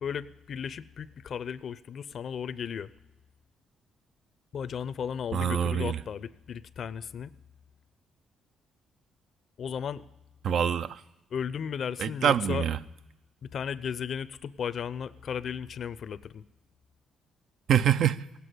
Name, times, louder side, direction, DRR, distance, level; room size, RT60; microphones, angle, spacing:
voice 1, 0.0-2.9 4.5-7.3 9.6-10.0 11.3-12.7 13.4-16.4, left 7 dB, 60° left, 16 dB, 0.5 m, -35 dB
voice 2, 5.3-6.0 10.4-11.0 12.0-12.8 17.7-18.2, right 9 dB, 70° right, 13 dB, 0.5 m, -25 dB
17.0 x 8.3 x 9.3 m, 0.95 s
cardioid pair, 90°, 0 cm